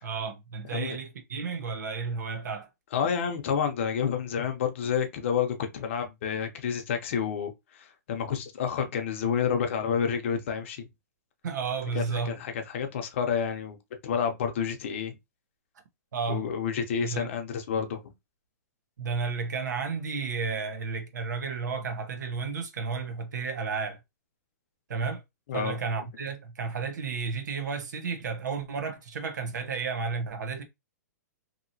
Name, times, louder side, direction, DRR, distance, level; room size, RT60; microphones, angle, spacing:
voice 1, 0.0-2.7 11.4-12.4 16.1-16.5 17.0-17.3 19.0-24.0 24.9-25.2 25.5-30.6, right 5 dB, 75° right, 0.9 m, -32 dB
voice 2, 2.9-7.5 7.8-10.9 11.9-13.8 14.0-15.2 16.3-18.1 25.5-25.8, left 7 dB, 45° left, 0.7 m, -29 dB
2.9 x 2.7 x 2.7 m
hypercardioid pair, 170°, 10 cm